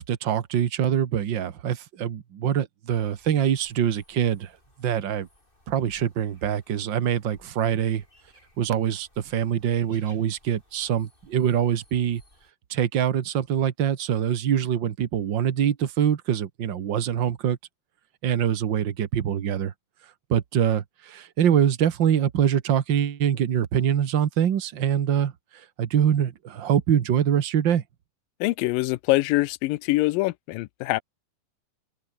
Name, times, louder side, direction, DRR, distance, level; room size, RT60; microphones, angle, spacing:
voice 1, 0.0-4.5 4.8-5.3 5.7-8.0 8.6-12.2 12.7-17.6 18.2-19.7 20.0-27.8, right 9 dB, 85° right, 1.0 m, -24 dB
sound 1, 2.9-12.5, left 1 dB, 15° left, 7.3 m, -60 dB
voice 2, 28.4-31.0, left 20 dB, 80° left, 2.3 m, -24 dB
omnidirectional pair, 4.2 m